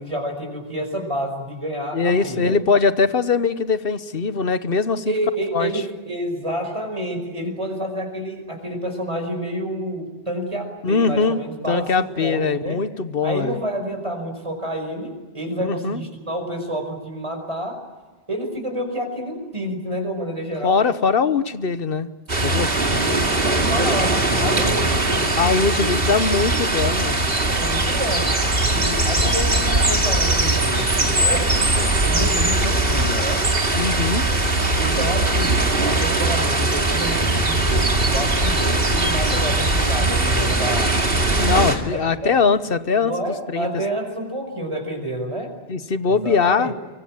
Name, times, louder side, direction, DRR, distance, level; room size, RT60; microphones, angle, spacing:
voice 1, 0.0-2.6 5.1-12.9 13.2-17.8 18.3-20.8 22.8-26.1 27.4-33.4 34.3-34.4 34.8-41.0 41.7-42.4 43.0-45.5 46.1-46.7, right 1 dB, 30° right, 4 dB, 5.5 m, -29 dB
voice 2, 1.9-5.1 5.5-5.7 10.8-11.4 11.7-13.6 15.6-16.0 20.6-22.1 22.4-22.8 24.4-24.6 25.4-27.3 33.7-34.3 41.4-43.7 45.7-46.7, left 5 dB, 65° left, 13 dB, 1.3 m, -21 dB
sound 1, 22.3-41.8, right 2 dB, 65° right, 2.7 m, -20 dB
25.0 x 24.0 x 8.8 m, 1.2 s
omnidirectional pair, 1.0 m